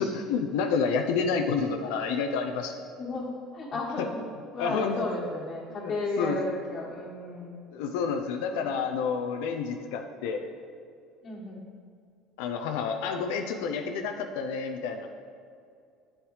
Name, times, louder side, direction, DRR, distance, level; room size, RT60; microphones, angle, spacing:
voice 1, 0.0-2.8 4.0-4.1 4.6-5.0 5.7-6.3 7.7-10.5 12.4-15.1, left 5 dB, 75° left, 5 dB, 0.5 m, -29 dB
voice 2, 3.0-4.2 4.5-7.6 8.5-8.6 11.2-11.7, left 2 dB, 40° left, -5 dB, 1.4 m, -34 dB
8.7 x 7.1 x 3.2 m, 2.4 s
hypercardioid pair, 75°, 0 cm